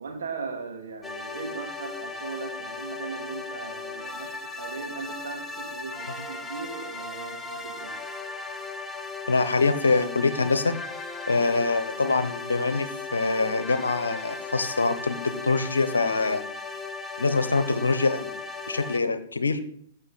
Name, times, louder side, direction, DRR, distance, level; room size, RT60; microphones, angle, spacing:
voice 1, 0.0-8.0, right 4 dB, 60° right, 1 dB, 2.7 m, -38 dB
sound 1, 1.0-19.0, left 3 dB, 5° left, 0.7 m, -37 dB
voice 2, 9.3-10.7 11.3-16.4 17.2-18.3 18.7-19.6, left 3 dB, 70° left, 11 dB, 1.0 m, -24 dB
14.0 x 6.0 x 4.1 m, 0.64 s
figure-of-eight pair, 110°, 0 cm